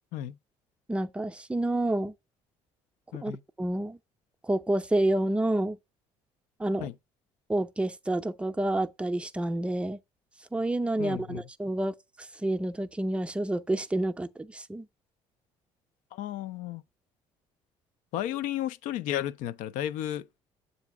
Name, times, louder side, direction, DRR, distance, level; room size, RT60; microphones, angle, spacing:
voice 1, 0.9-2.1 3.2-3.3 3.6-4.0 4.4-5.8 6.6-6.9 7.5-10.0 10.5-14.9, right 1 dB, 10° right, 0.5 m, -29 dB
voice 2, 11.0-11.4 16.1-16.8 18.1-20.4, left 12 dB, 75° left, 0.4 m, -33 dB
7.2 x 2.6 x 5.7 m
supercardioid pair, 75°, 14 cm